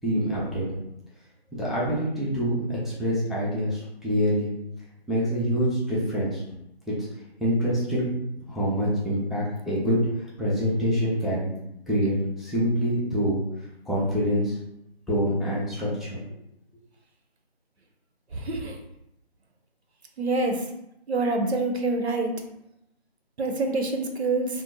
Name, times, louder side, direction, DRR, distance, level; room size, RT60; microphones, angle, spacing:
voice 1, 0.0-0.6 1.5-4.6 5.1-6.4 6.9-7.0 7.4-8.1 8.5-11.5 11.9-13.4 13.9-14.6 15.1-16.2, equal, ahead, -9 dB, 0.4 m, -25 dB
voice 2, 18.5-18.8 20.2-20.6 21.1-22.3 23.4-24.5, right 2 dB, 85° right, 3 dB, 0.6 m, -26 dB
2.5 x 2.0 x 2.5 m, 0.81 s
figure-of-eight pair, 170°, 32 cm